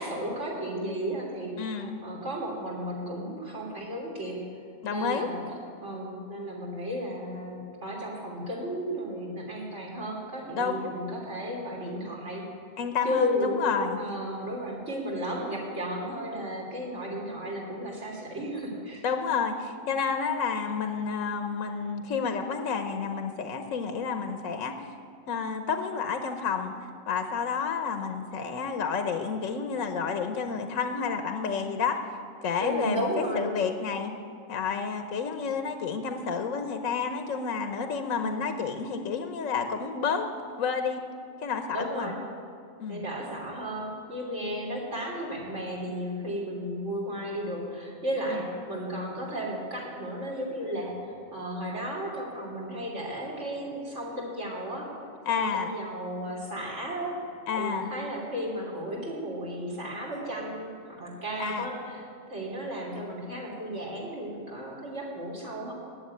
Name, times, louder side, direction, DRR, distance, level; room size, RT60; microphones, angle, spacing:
voice 1, 0.0-4.4 4.9-5.4 5.8-12.4 13.0-13.5 14.0-19.0 32.6-33.5 38.1-38.5 41.7-42.2 42.9-54.9 55.3-57.2 57.6-65.7, equal, 60° right, -2 dB, 3.6 m, -34 dB
voice 2, 1.6-2.0 4.8-5.3 10.6-10.9 12.8-14.0 19.0-24.8 25.3-26.7 27.1-32.1 32.4-34.1 34.5-40.3 40.6-41.0 41.4-42.1 42.8-43.1 48.3-48.4 55.3-55.8 57.5-57.9 61.4-61.7, left 6 dB, 80° left, 7 dB, 1.2 m, -30 dB
18.5 x 7.3 x 9.7 m, 2.3 s
omnidirectional pair, 1.4 m